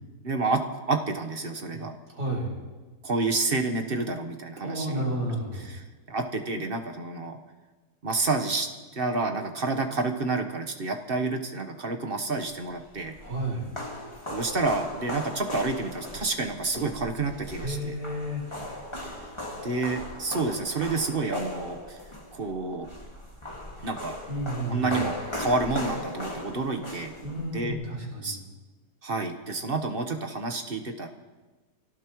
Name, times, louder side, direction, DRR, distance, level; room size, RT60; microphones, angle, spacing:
voice 1, 0.2-1.9 3.0-5.0 5.6-7.4 8.0-8.7 8.9-13.2 14.3-17.9 19.6-22.0 22.3-22.9 23.8-24.2 24.7-27.1 27.5-27.7 28.2-28.4 29.0-31.1, right 3 dB, 40° right, 5 dB, 1.2 m, -29 dB
voice 2, 2.1-2.5 4.6-5.7 13.2-13.7 17.6-18.5 24.3-25.0 27.2-28.4, right 1 dB, 80° right, -4 dB, 5.3 m, -31 dB
sound 1, 12.7-27.7, left 1 dB, 15° left, 2.0 m, -38 dB
23.5 x 17.5 x 3.1 m, 1.2 s
omnidirectional pair, 1.7 m